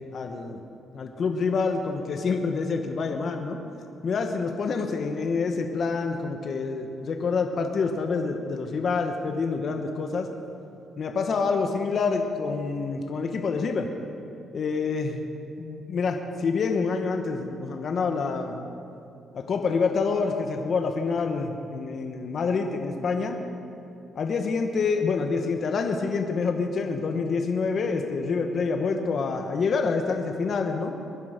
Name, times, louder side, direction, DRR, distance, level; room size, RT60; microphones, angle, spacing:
voice 1, 0.1-0.6 0.9-3.6 4.0-10.3 11.0-13.9 14.5-15.3 15.6-18.7 19.3-23.4 24.1-31.0, left 4 dB, 55° left, 4 dB, 1.3 m, -27 dB
22.0 x 10.5 x 5.2 m, 2.6 s
cardioid pair, 90°, 0 cm